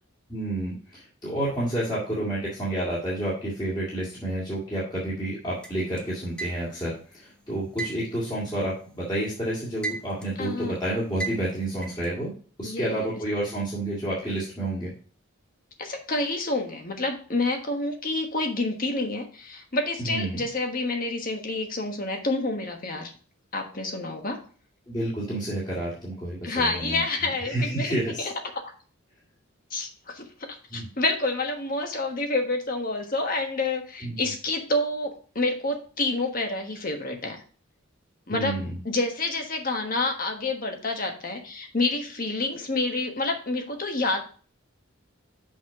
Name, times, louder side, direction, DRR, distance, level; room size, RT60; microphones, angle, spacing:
voice 1, 0.3-12.3 12.6-14.9 20.1-20.4 24.9-28.3 30.7-30.9 34.0-34.3 38.3-38.8, right 1 dB, 20° left, -7 dB, 2.1 m, -30 dB
sound 1, 5.6-6.9 7.8-9.2 9.5-10.4 11.2-12.1, right 4 dB, 5° left, 0.7 m, -35 dB
voice 2, 10.4-10.7 12.6-13.2 15.8-23.1 23.5-24.4 26.4-28.3 29.7-37.4 38.3-38.6 38.8-44.2, left 2 dB, 40° left, 4 dB, 1.3 m, -28 dB
6.2 x 5.8 x 4.8 m, 0.41 s
head